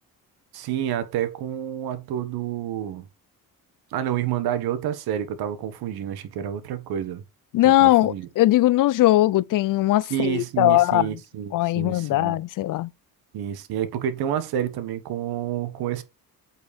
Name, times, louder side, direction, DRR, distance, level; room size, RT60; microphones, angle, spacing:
voice 1, 0.5-3.1 3.9-7.2 7.8-8.3 10.1-12.4 13.3-16.0, right 10 dB, 80° right, 1.5 m, -29 dB
voice 2, 7.5-11.2 11.5-12.9, left 15 dB, 60° left, 0.6 m, -20 dB
8.2 x 4.3 x 5.2 m
cardioid pair, 115°, 37 cm